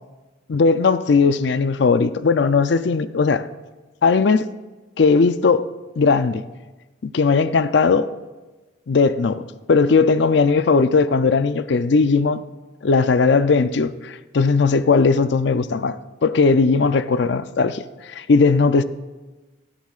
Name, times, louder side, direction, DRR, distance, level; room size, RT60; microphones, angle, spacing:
voice 1, 0.5-3.5 4.0-4.5 5.0-5.7 6.0-6.4 7.0-8.1 8.9-9.4 9.7-12.4 12.8-18.8, left 4 dB, 60° left, 0.4 m, -18 dB
18.5 x 13.0 x 2.4 m
head